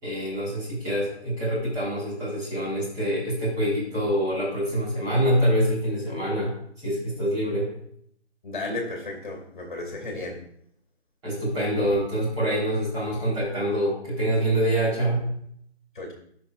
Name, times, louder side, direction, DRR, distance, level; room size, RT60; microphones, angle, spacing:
voice 1, 0.0-7.7 11.2-15.3, equal, 10° right, -10 dB, 3.8 m, -25 dB
voice 2, 8.4-10.4 15.9-16.1, left 2 dB, 45° left, 2 dB, 2.5 m, -33 dB
16.5 x 6.1 x 2.5 m, 0.67 s
figure-of-eight pair, 150°, 34 cm